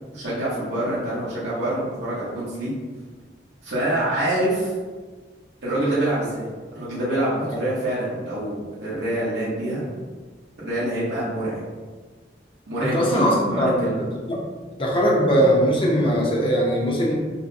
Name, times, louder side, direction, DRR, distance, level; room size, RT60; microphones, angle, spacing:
voice 1, 0.1-2.7 3.6-4.7 5.6-9.9 10.6-11.6 12.7-14.0, right 1 dB, 85° right, -10 dB, 1.0 m, -26 dB
voice 2, 12.8-14.4 14.8-17.1, equal, 30° left, -2 dB, 0.6 m, -20 dB
5.6 x 2.2 x 2.7 m, 1.4 s
head